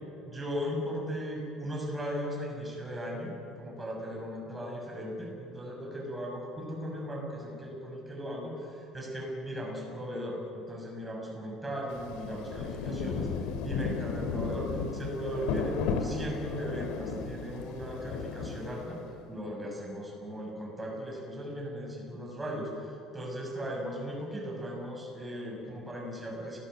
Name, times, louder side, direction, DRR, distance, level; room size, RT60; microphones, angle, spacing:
voice 1, 0.2-3.3 3.6-19.0 19.3-26.6, equal, 10° right, -1 dB, 6.6 m, -37 dB
Rain, 11.9-19.1, left 5 dB, 80° left, 3.0 m, -34 dB
30.0 x 18.0 x 8.0 m, 3.0 s
cardioid pair, 160°, 0 cm